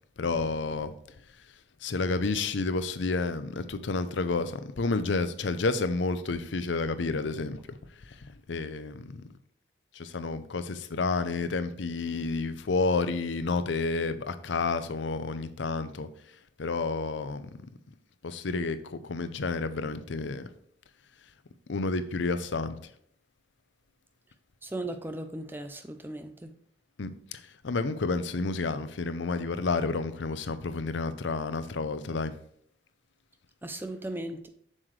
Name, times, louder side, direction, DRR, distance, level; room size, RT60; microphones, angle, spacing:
voice 1, 0.2-0.9 1.8-7.6 8.0-9.2 9.9-16.1 16.6-17.5 18.2-20.5 21.7-22.8 27.0-32.3, left 3 dB, 80° left, 0.6 m, -30 dB
voice 2, 24.6-26.5 33.6-34.5, right 1 dB, 10° right, 0.5 m, -37 dB
7.4 x 6.4 x 3.2 m
head